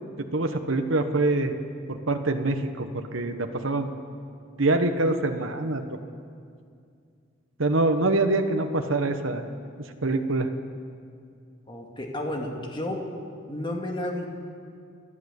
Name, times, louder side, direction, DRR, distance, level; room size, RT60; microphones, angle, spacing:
voice 1, 0.3-1.5 1.9-3.9 4.6-5.8 7.6-9.4 9.8-10.5, right 2 dB, 85° right, 6 dB, 1.3 m, -25 dB
voice 2, 11.7-13.1 13.5-14.3, left 1 dB, 25° left, 1 dB, 2.3 m, -31 dB
29.5 x 11.0 x 8.3 m, 2.3 s
head